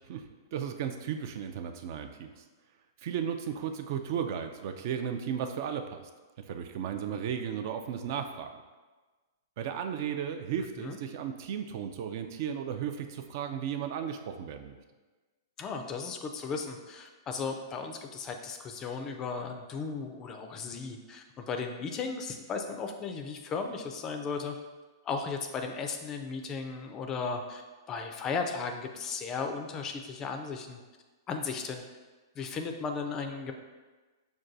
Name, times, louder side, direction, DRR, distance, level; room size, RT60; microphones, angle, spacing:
voice 1, 0.1-2.4 3.0-6.0 6.5-8.5 9.6-14.8, right 8 dB, 50° right, 7 dB, 0.3 m, -35 dB
voice 2, 15.6-24.5 25.0-27.6 27.9-30.8 31.3-31.8 32.4-33.5, left 5 dB, 25° left, 5 dB, 0.3 m, -35 dB
6.0 x 2.2 x 2.6 m, 1.3 s
hypercardioid pair, 135°, 2 cm